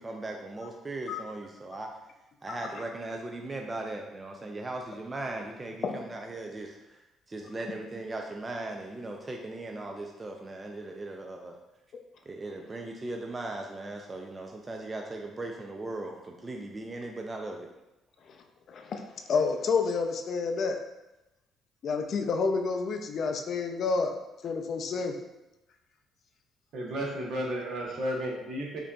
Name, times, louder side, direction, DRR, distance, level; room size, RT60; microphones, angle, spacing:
voice 1, 0.0-1.9 2.4-7.0 7.3-11.5 12.3-17.7, right 2 dB, 20° right, 1 dB, 0.3 m, -38 dB
voice 2, 18.7-20.8 21.8-24.1 24.4-25.1, left 4 dB, 50° left, 5 dB, 0.4 m, -29 dB
voice 3, 26.7-28.8, equal, 65° right, -1 dB, 0.8 m, -33 dB
4.8 x 2.6 x 2.3 m, 0.97 s
cardioid pair, 120°, 0 cm